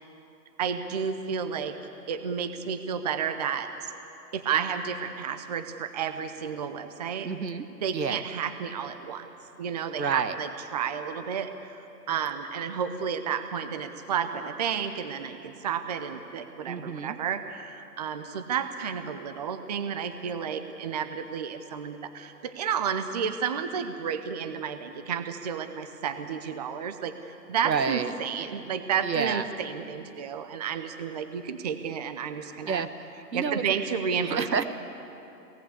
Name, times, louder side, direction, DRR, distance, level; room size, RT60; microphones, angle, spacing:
voice 1, 0.6-1.7 2.1-3.9 4.3-7.3 7.8-9.3 9.6-27.1 27.5-32.9 33.3-34.6, right 7 dB, 25° right, 9 dB, 0.7 m, -31 dB
voice 2, 7.2-7.7 7.9-8.2 9.9-10.3 16.7-17.2 27.6-28.1 28.4-28.5 29.0-29.4 32.7-32.9 33.3-33.6 34.2-34.6, right 6 dB, 80° right, 10 dB, 1.6 m, -29 dB
23.5 x 18.0 x 8.1 m, 2.8 s
hypercardioid pair, 150°, 49 cm